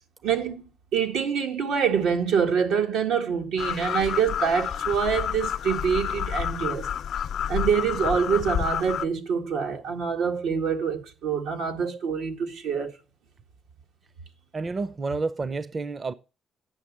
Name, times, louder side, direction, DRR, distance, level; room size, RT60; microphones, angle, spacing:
voice 1, 0.2-0.7 0.9-6.9 7.5-12.9, right 6 dB, 90° right, 1.6 m, -25 dB
sound 1, 3.6-9.1, left 9 dB, 70° left, 0.5 m, -29 dB
voice 2, 14.5-16.1, right 3 dB, 35° right, 0.6 m, -29 dB
9.0 x 6.2 x 8.5 m
cardioid pair, 90°, 0 cm